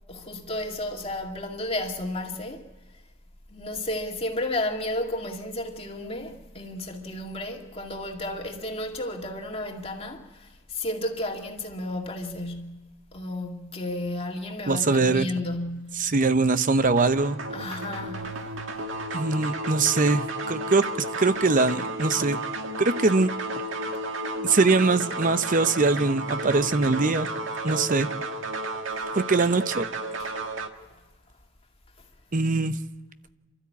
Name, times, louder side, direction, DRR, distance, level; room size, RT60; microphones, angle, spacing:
voice 1, 0.1-2.7 3.5-16.0 17.5-18.2 29.4-29.5 30.2-30.3, left 1 dB, 30° left, 2.2 m, -32 dB
voice 2, 14.7-15.3 16.0-17.4 19.1-22.4 22.8-23.3 24.4-27.3 27.6-28.1 29.1-29.9 32.3-32.8, right 3 dB, 45° right, 0.8 m, -22 dB
sound 1, 17.0-30.7, right 2 dB, 85° right, 1.8 m, -32 dB
28.5 x 13.0 x 8.4 m
head